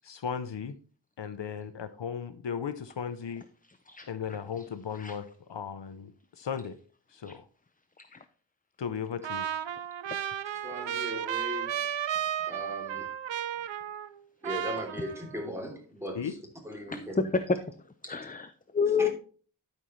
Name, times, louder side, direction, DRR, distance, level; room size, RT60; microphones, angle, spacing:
voice 1, 0.0-0.8 1.2-3.4 4.1-6.1 6.4-6.8 7.1-7.5 8.8-9.5 16.1-16.3, left 7 dB, 70° left, 0.7 m, -36 dB
Trumpet, 9.2-14.2 14.4-15.5, right 10 dB, 80° right, 0.6 m, -34 dB
voice 2, 10.5-11.7 12.5-13.1 14.4-16.4 16.6-17.3 19.0-19.1, equal, 5° right, 3.2 m, -38 dB
voice 3, 16.9-17.6 17.8-19.1, left 5 dB, 20° left, 0.5 m, -30 dB
12.5 x 5.5 x 3.1 m
wide cardioid pair, 60°, 44 cm